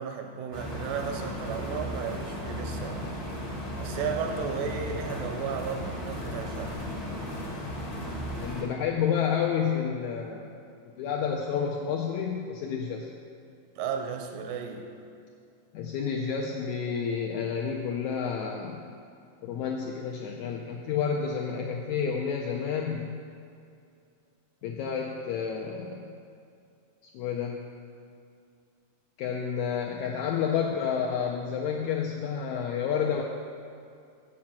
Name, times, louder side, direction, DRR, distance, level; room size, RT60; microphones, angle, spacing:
voice 1, 0.0-3.1 3.8-6.8 13.8-15.0, right 6 dB, 85° right, 4 dB, 2.4 m, -34 dB
sound 1, 0.5-8.6, equal, 40° left, 0.5 m, -35 dB
voice 2, 8.4-10.5 11.0-13.1 15.7-18.8 19.4-23.2 24.6-26.1 27.1-27.6 29.2-33.2, left 7 dB, 80° left, 0 dB, 1.7 m, -30 dB
7.5 x 7.4 x 5.9 m, 2.4 s
omnidirectional pair, 3.9 m